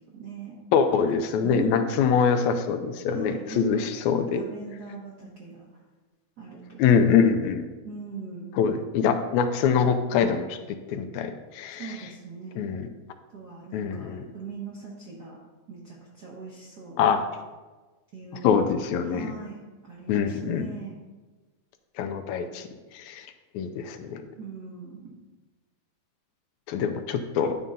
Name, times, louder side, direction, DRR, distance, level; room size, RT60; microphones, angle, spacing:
voice 1, 0.0-0.6 1.4-1.9 3.0-3.8 4.2-5.8 6.4-7.0 7.8-8.5 11.7-12.7 13.3-15.4 15.7-17.0 18.1-18.7 19.0-19.6 19.8-21.0 24.4-25.2, right 4 dB, 60° right, -5 dB, 1.0 m, -39 dB
voice 2, 0.7-4.4 6.8-7.7 8.6-12.0 12.6-12.9 13.7-14.3 17.0-17.2 18.4-19.3 20.1-20.7 22.0-22.7 22.9-23.3 23.5-24.2 26.7-27.6, left 6 dB, 80° left, 7 dB, 1.9 m, -24 dB
10.5 x 3.8 x 5.4 m, 1.2 s
omnidirectional pair, 3.4 m